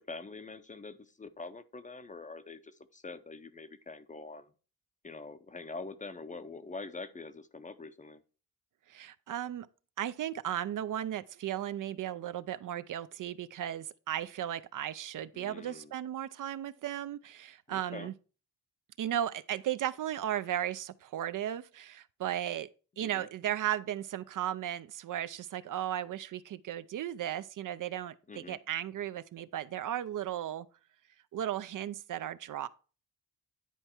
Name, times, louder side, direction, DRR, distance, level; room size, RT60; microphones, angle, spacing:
voice 1, 0.0-4.5 5.0-8.2 15.3-15.9 17.7-18.1 23.0-23.3 28.3-28.6, left 3 dB, 20° left, 0.6 m, -45 dB
voice 2, 8.9-9.7 10.0-18.1 19.0-22.7 23.0-30.7 31.3-32.7, right 11 dB, 55° right, 0.5 m, -35 dB
10.0 x 4.5 x 4.3 m
cardioid pair, 120°, 37 cm